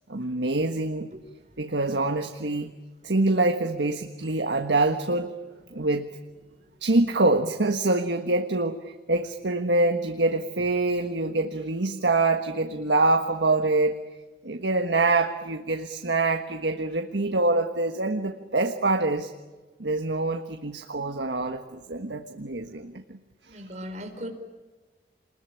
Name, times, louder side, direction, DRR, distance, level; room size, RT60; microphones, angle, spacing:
voice 1, 0.1-1.1 1.6-2.7 3.0-5.3 5.7-6.1 6.8-14.0 14.4-19.3 19.8-23.2 23.7-23.8, right 2 dB, 90° right, 6 dB, 1.4 m, -25 dB
voice 2, 23.5-24.3, equal, 40° right, 4 dB, 4.5 m, -37 dB
27.0 x 21.0 x 10.0 m, 1.3 s
head